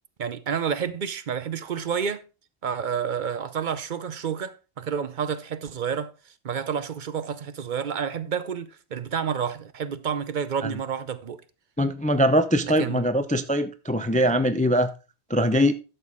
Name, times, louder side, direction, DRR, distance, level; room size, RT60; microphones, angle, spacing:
voice 1, 0.2-2.2 2.6-6.1 6.4-11.4 12.6-13.0, right 7 dB, 50° right, 0.7 m, -29 dB
voice 2, 11.8-14.9 15.3-15.7, equal, 10° left, 0.3 m, -22 dB
12.0 x 6.6 x 3.6 m
omnidirectional pair, 1.1 m